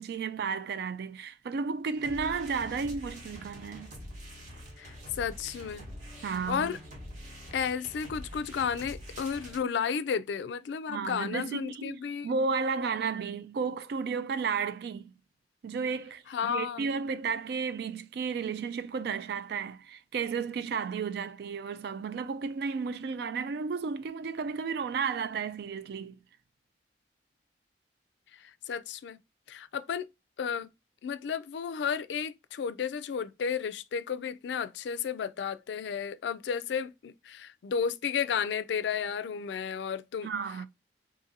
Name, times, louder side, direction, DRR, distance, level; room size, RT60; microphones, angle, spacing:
voice 1, 0.0-3.9 6.2-6.7 10.9-15.1 15.6-26.2 40.2-40.7, right 5 dB, 65° right, 0.3 m, -33 dB
sound 1, 1.9-9.6, equal, 45° right, 1.1 m, -45 dB
voice 2, 4.8-5.9 6.5-6.8 7.5-12.3 16.3-17.0 28.4-29.2 29.5-30.1 30.4-30.7 31.0-40.3, left 7 dB, 80° left, 0.3 m, -33 dB
2.8 x 2.6 x 3.8 m
head